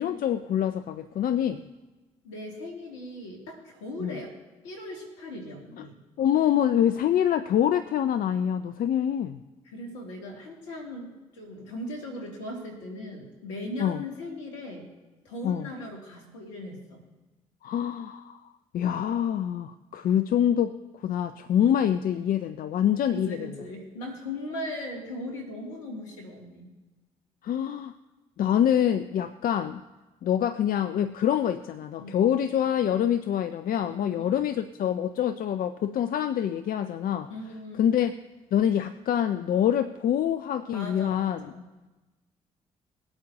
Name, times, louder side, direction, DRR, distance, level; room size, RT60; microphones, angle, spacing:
voice 1, 0.0-1.6 4.0-4.1 6.2-9.4 13.8-14.0 15.4-15.7 17.6-18.4 18.7-20.8 21.0-23.5 27.4-27.9 28.4-29.8 30.2-37.3 37.8-38.1 38.5-41.4, left 10 dB, 60° left, 10 dB, 0.6 m, -25 dB
voice 2, 2.2-4.3 4.6-6.0 9.6-14.9 15.2-17.0 23.1-26.7 32.0-32.2 33.9-34.4 37.3-37.9 40.7-41.7, left 1 dB, 85° left, -1 dB, 2.9 m, -39 dB
21.5 x 8.7 x 3.0 m, 1.2 s
hypercardioid pair, 45°, 16 cm